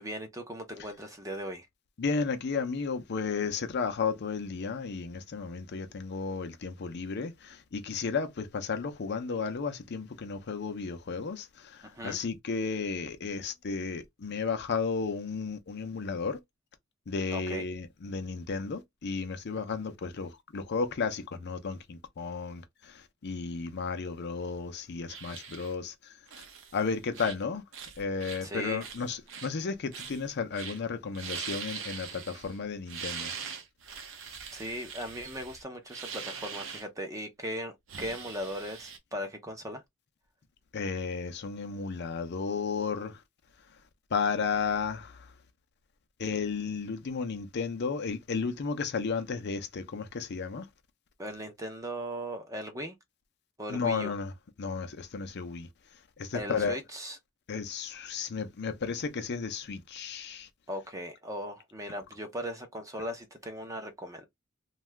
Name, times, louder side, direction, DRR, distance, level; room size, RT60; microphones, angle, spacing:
voice 1, 0.0-1.7 11.9-12.2 17.3-17.6 28.4-28.9 34.5-39.8 51.2-53.0 53.6-54.1 56.3-57.2 60.7-64.3, equal, 15° right, 0.6 m, -38 dB
voice 2, 2.0-16.4 17.1-26.5 26.7-27.6 28.0-33.3 40.7-43.2 44.1-45.3 46.2-50.7 53.7-54.3 54.6-55.7 56.2-56.8 57.5-60.5, left 5 dB, 55° left, 0.5 m, -33 dB
sound 1, 25.1-25.7 26.3-26.8 27.1-27.4 27.7-28.4 28.8-29.5 29.9-30.3 30.5-30.8 31.1-32.6 32.9-36.8 37.9-39.0, right 6 dB, 65° right, 0.6 m, -42 dB
2.6 x 2.3 x 3.2 m
head